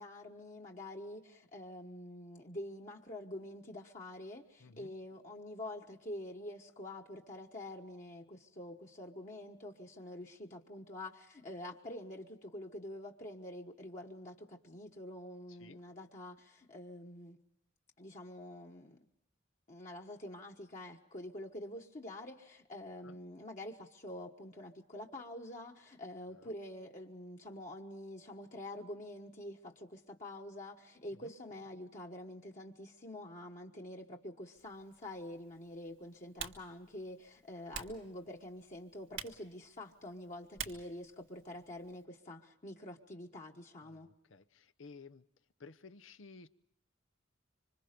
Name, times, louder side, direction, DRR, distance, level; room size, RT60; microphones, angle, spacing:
voice 1, 0.0-17.4 18.0-19.0 19.7-44.1, left 1 dB, 40° left, 0 dB, 1.4 m, -47 dB
voice 2, 4.6-4.9 15.5-15.8 23.0-23.2 26.3-26.6 31.1-31.3 43.8-45.3 45.6-46.5, left 4 dB, 90° left, 11 dB, 0.9 m, -55 dB
Typing, 34.5-42.0, right 8 dB, 85° right, 1.6 m, -50 dB
26.0 x 25.0 x 5.2 m, 0.79 s
head